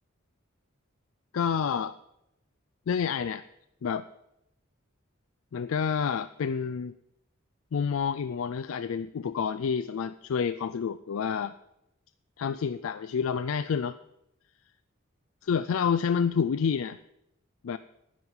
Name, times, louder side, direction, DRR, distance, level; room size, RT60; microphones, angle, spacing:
voice 1, 1.3-2.0 2.9-3.4 3.8-4.1 5.5-6.9 7.7-11.5 12.4-14.0 15.4-17.0 17.6-17.8, left 6 dB, 80° left, 12 dB, 0.4 m, -28 dB
10.5 x 9.7 x 5.5 m, 0.84 s
head